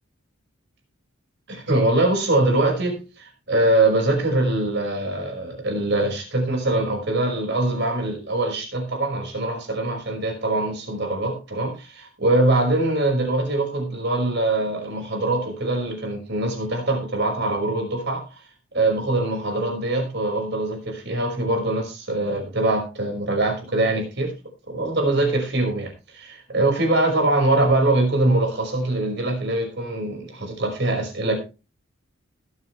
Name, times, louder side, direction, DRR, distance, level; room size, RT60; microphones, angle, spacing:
voice 1, 1.5-18.4 18.7-24.3 24.7-31.4, right 2 dB, 55° right, 2 dB, 5.5 m, -23 dB
21.0 x 8.4 x 3.3 m, 0.30 s
head